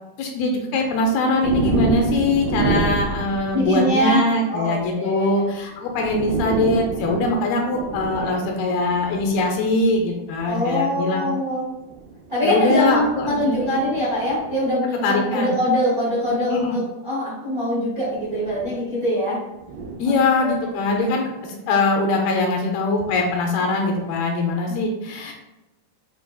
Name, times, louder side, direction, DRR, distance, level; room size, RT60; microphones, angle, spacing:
voice 1, 0.2-11.3 12.4-13.8 15.0-15.5 16.5-16.8 20.0-25.3, left 2 dB, 80° left, 1 dB, 2.4 m, -22 dB
sound 1, 1.4-4.1 5.4-5.5 5.9-9.5 10.3-10.6 11.8-14.7 16.2-16.3 18.0-18.8 19.6-21.0, right 3 dB, 85° right, 2.0 m, -28 dB
voice 2, 3.5-5.4 10.4-11.6 12.3-19.4 20.1-20.2 20.4-20.6 24.7-24.9, equal, 65° right, -7 dB, 0.8 m, -23 dB
7.7 x 2.9 x 2.3 m, 0.98 s
omnidirectional pair, 4.6 m